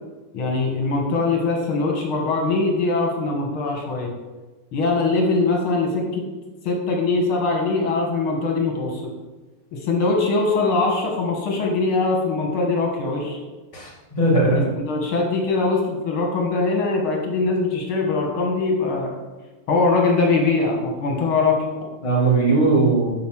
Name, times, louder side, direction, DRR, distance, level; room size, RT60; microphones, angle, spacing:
voice 1, 0.3-4.1 4.7-6.2 6.6-9.1 9.7-13.4 14.4-19.1 19.7-21.6, left 3 dB, 75° left, 0 dB, 2.2 m, -22 dB
voice 2, 13.7-14.7 22.0-23.1, right 3 dB, 15° left, -5 dB, 2.1 m, -19 dB
9.4 x 4.8 x 6.1 m, 1.2 s
omnidirectional pair, 2.4 m